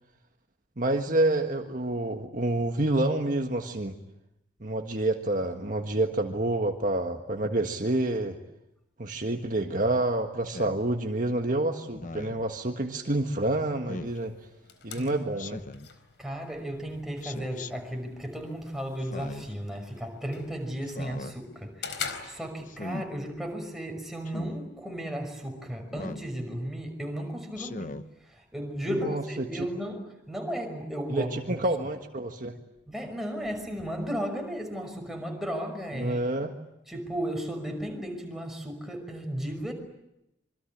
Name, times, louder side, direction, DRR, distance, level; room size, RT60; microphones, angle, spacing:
voice 1, 0.8-3.9 4.6-8.4 9.0-14.3 14.8-15.6 29.0-29.5 31.1-32.6 35.9-36.5, right 2 dB, 45° right, 1.6 m, -28 dB
Speech synthesizer, 10.5-10.8 11.9-12.4 13.9-14.2 15.4-15.9 17.2-17.7 19.0-19.5 20.8-21.3 22.7-23.1 24.3-24.6 25.9-26.3 27.5-28.1, left 2 dB, 45° left, 1.0 m, -39 dB
sound 1, 14.0-23.0, left 6 dB, 75° left, 4.2 m, -45 dB
voice 2, 16.2-28.0 28.2-31.7 32.9-36.2 36.9-39.7, equal, ahead, 5.8 m, -35 dB
27.0 x 24.5 x 8.7 m
head